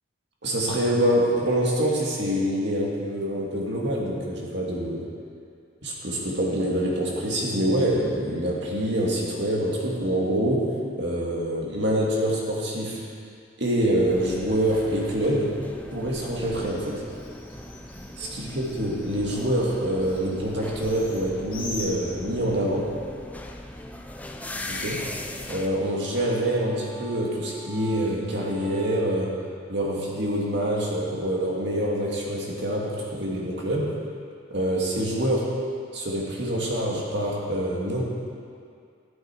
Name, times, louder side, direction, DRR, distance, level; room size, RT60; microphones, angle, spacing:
voice 1, 0.4-5.0 5.8-10.7 11.0-13.0 13.6-15.6 15.9-17.0 18.2-22.9 24.8-25.1 25.5-29.3 29.7-34.0 34.5-35.5 35.9-38.0, right 1 dB, 60° right, -3 dB, 2.0 m, -25 dB
Bird, 13.7-22.6, left 1 dB, 25° left, 2.8 m, -44 dB
sound 1, 14.1-25.7, left 1 dB, 10° left, 0.5 m, -39 dB
sound 2, 24.2-29.2, right 2 dB, 35° right, 2.3 m, -46 dB
14.0 x 7.9 x 4.4 m, 2.3 s
head